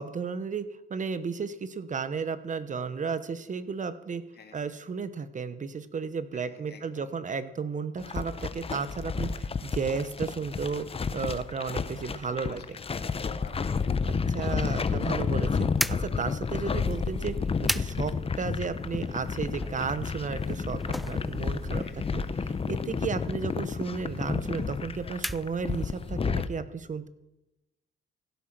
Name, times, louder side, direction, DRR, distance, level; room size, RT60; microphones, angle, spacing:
voice 1, 0.0-4.2 4.5-10.9 11.1-12.6 14.0-15.7 16.0-27.1, right 5 dB, 40° right, 13 dB, 0.9 m, -33 dB
voice 2, 4.3-4.7 6.3-7.0 12.5-14.0 14.3-14.4 21.7-22.4, left 6 dB, 55° left, 5 dB, 2.4 m, -53 dB
sound 1, 8.0-26.5, left 5 dB, 30° left, 0.8 m, -31 dB
sound 2, 15.7-26.1, equal, ahead, 0.4 m, -39 dB
16.0 x 8.6 x 6.0 m, 0.93 s
cardioid pair, 90°, 20 cm